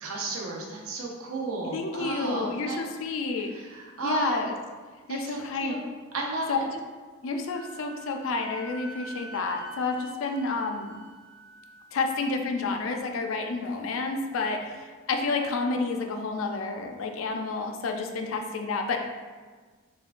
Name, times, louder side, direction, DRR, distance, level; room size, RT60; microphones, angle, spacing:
voice 1, 0.0-2.8 3.5-4.4 5.1-5.9 6.1-6.6, right 3 dB, 80° right, -1 dB, 0.6 m, -33 dB
voice 2, 1.7-3.5 4.0-4.5 5.1-5.7 6.5-6.8 7.2-11.0 11.9-19.1, left 3 dB, 70° left, 4 dB, 0.4 m, -30 dB
Wind instrument woodwind instrument, 7.4-11.9, right 1 dB, 45° right, 1.4 m, -47 dB
6.4 x 2.2 x 2.5 m, 1.4 s
head